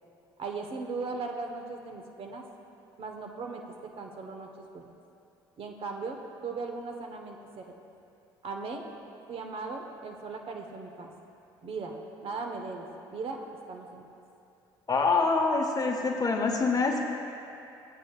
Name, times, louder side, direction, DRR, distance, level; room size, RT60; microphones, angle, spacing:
voice 1, 0.4-2.4 3.0-3.6 4.0-4.9 5.6-7.6 8.4-8.9 9.3-11.1 11.6-13.4 13.7-14.0, right 4 dB, 50° right, 2 dB, 1.2 m, -38 dB
voice 2, 14.9-17.0, left 4 dB, 30° left, 2 dB, 1.0 m, -25 dB
15.0 x 8.9 x 2.4 m, 2.7 s
hypercardioid pair, 60°, 12 cm